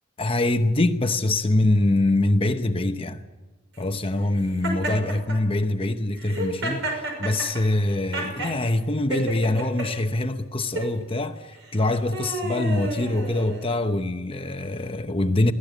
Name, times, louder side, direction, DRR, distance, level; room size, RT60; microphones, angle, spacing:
voice 1, 0.2-3.2 3.8-15.5, left 2 dB, 30° left, 0.9 m, -24 dB
Laughter, 4.6-5.4 6.2-8.6 9.1-9.9 10.6-10.9 11.6-13.8, right 1 dB, 70° right, 6.3 m, -31 dB
22.5 x 17.0 x 8.0 m
head